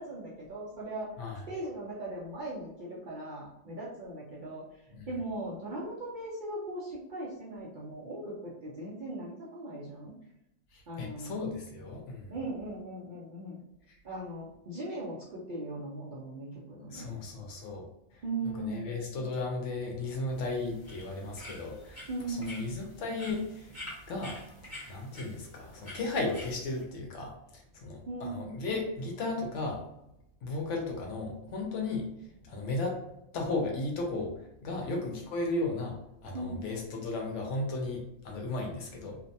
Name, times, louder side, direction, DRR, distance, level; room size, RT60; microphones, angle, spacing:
voice 1, 0.0-1.1 1.5-10.1 10.9-11.3 12.3-13.6 14.0-17.1 18.2-18.9 22.1-22.6 28.1-28.5 36.3-36.6, right 2 dB, 55° right, -6 dB, 0.6 m, -39 dB
voice 2, 10.7-12.3 16.9-17.8 18.1-18.2 18.6-23.7 24.1-24.4 24.9-29.8 30.4-32.0 32.4-33.0 33.3-34.3 34.6-39.2, left 2 dB, 70° left, 1 dB, 0.9 m, -35 dB
sound 1, 20.3-26.8, left 1 dB, 15° left, 0.9 m, -47 dB
2.6 x 2.1 x 2.6 m, 0.83 s
omnidirectional pair, 1.3 m